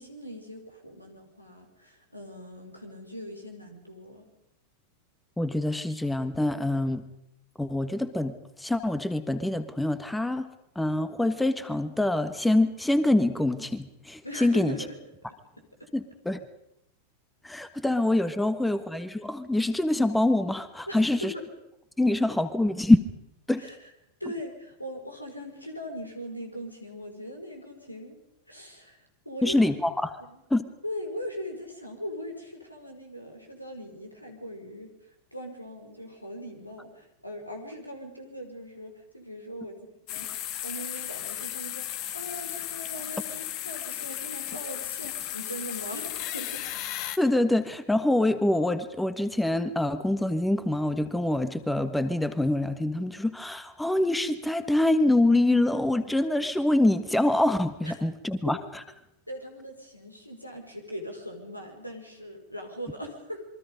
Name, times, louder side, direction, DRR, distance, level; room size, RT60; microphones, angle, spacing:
voice 1, 0.0-4.3 14.2-15.0 15.6-15.7 20.9-21.4 23.6-23.8 24.2-28.2 28.5-29.7 30.2-30.4 30.8-34.9 35.3-40.3 40.6-46.7 57.8-57.9 59.3-63.5, equal, 90° left, 3 dB, 4.5 m, -40 dB
voice 2, 5.4-7.1 7.6-10.5 10.7-14.8 15.9-16.4 17.4-21.3 22.0-23.0 23.5-23.7 29.4-30.1 30.5-30.7 47.2-58.8, left 1 dB, 5° left, 12 dB, 1.4 m, -25 dB
sound 1, 40.1-47.2, left 12 dB, 40° left, 1.4 m, -35 dB
27.5 x 23.5 x 5.2 m, 0.83 s
figure-of-eight pair, 90°, 0 cm